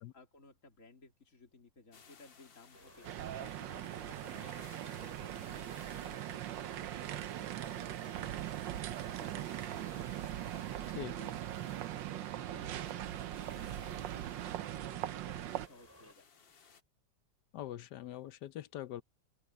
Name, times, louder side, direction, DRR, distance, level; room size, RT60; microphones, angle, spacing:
voice 1, 0.1-11.3 11.6-14.5 14.8-16.3, left 2 dB, 45° left, 3.6 m, -59 dB
sound 1, 1.9-16.8, left 6 dB, 90° left, 2.6 m, -61 dB
sound 2, 2.7-16.1, right 1 dB, 5° right, 4.2 m, -60 dB
sound 3, 3.0-15.7, right 12 dB, 85° right, 1.5 m, -40 dB
voice 2, 17.5-19.0, left 12 dB, 70° left, 1.2 m, -43 dB
open air
omnidirectional pair, 2.0 m